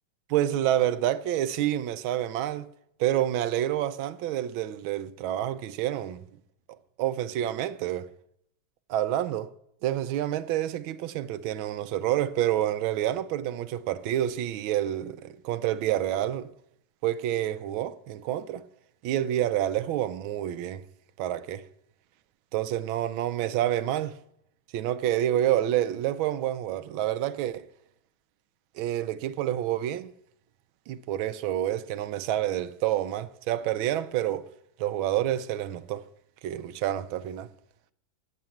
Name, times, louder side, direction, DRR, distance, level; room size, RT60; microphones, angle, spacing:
voice 1, 0.3-2.7 3.0-6.2 7.0-8.1 8.9-9.5 9.8-16.5 17.0-18.6 19.0-20.8 21.2-21.6 22.5-24.2 24.7-27.6 28.7-30.1 30.9-34.4 34.8-36.0 36.4-37.5, right 12 dB, 85° right, 1.4 m, -28 dB
9.2 x 7.6 x 7.1 m
omnidirectional pair, 2.2 m